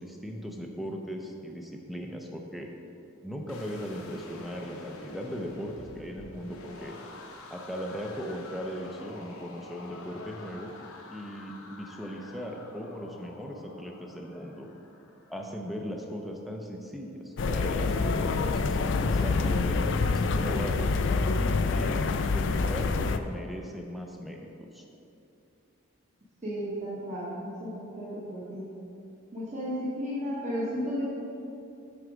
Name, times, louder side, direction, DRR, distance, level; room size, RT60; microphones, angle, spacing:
voice 1, 0.0-2.7 3.2-7.0 7.5-10.7 11.1-14.7 15.3-20.9 21.3-22.0 22.3-24.8, equal, ahead, 1 dB, 0.5 m, -38 dB
sound 1, 3.5-15.5, left 2 dB, 80° left, 0.9 m, -47 dB
sound 2, 17.4-23.2, left 4 dB, 55° left, 0.4 m, -26 dB
voice 2, 26.4-28.7 29.3-31.1, equal, 35° right, -8 dB, 1.3 m, -33 dB
7.9 x 5.9 x 5.0 m, 2.8 s
head